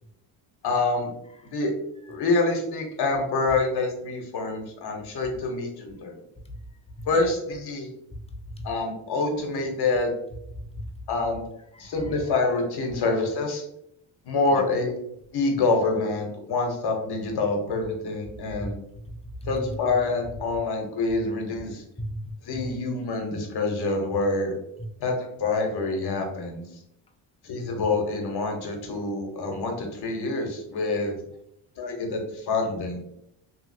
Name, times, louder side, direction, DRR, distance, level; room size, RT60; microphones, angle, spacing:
voice 1, 0.6-1.1 1.4-1.7 2.1-6.2 7.1-7.9 8.6-10.1 11.1-11.4 11.8-13.6 14.2-14.9 15.3-18.8 19.4-21.8 22.4-24.5 25.0-26.6 27.4-31.2 31.8-33.0, left 3 dB, 60° left, 2 dB, 0.9 m, -26 dB
voice 2, 19.1-19.5 22.0-22.2, equal, 15° left, 4 dB, 0.4 m, -36 dB
2.8 x 2.7 x 2.6 m, 0.77 s
cardioid pair, 80°, 45 cm